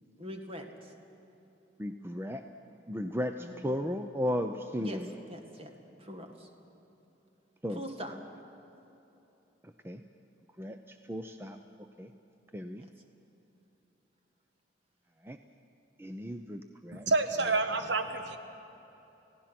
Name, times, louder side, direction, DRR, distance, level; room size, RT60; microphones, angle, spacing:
voice 1, 0.2-0.9 3.4-3.7 4.8-5.0 5.3-5.7 6.0-6.5 7.7-8.2 12.8-12.9, equal, 30° right, 3 dB, 1.9 m, -43 dB
voice 2, 1.8-2.4 2.9-5.1 7.6-7.8 9.8-10.0 10.6-11.6 12.0-12.1 12.5-12.8 15.2-15.4 16.0-17.1, equal, 15° right, 6 dB, 0.6 m, -35 dB
voice 3, 16.9-18.4, right 3 dB, 70° right, 7 dB, 1.3 m, -28 dB
29.5 x 16.5 x 6.0 m, 3.0 s
head